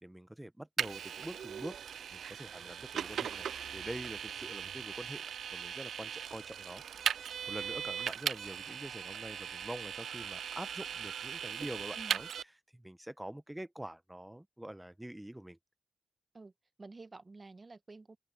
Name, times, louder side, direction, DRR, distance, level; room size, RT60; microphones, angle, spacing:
voice 1, 0.0-6.8 7.5-12.3 12.7-15.6, right 1 dB, 10° right, 0.9 m, -45 dB
Vehicle, 0.8-12.4, right 8 dB, 85° right, 0.3 m, -39 dB
sound 1, 1.7-11.0, left 2 dB, 25° left, 2.0 m, -69 dB
voice 2, 16.8-18.2, right 3 dB, 35° right, 1.3 m, -50 dB
open air
cardioid pair, 70°, 0 cm